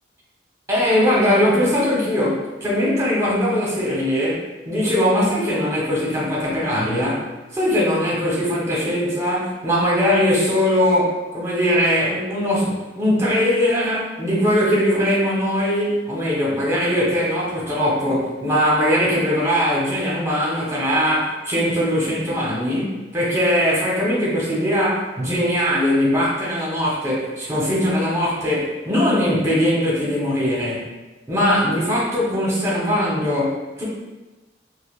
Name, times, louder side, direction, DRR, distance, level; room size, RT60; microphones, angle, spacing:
voice 1, 0.7-7.2 7.5-30.9 31.3-33.8, equal, 15° right, -6 dB, 0.9 m, -20 dB
4.8 x 2.1 x 2.4 m, 1.1 s
head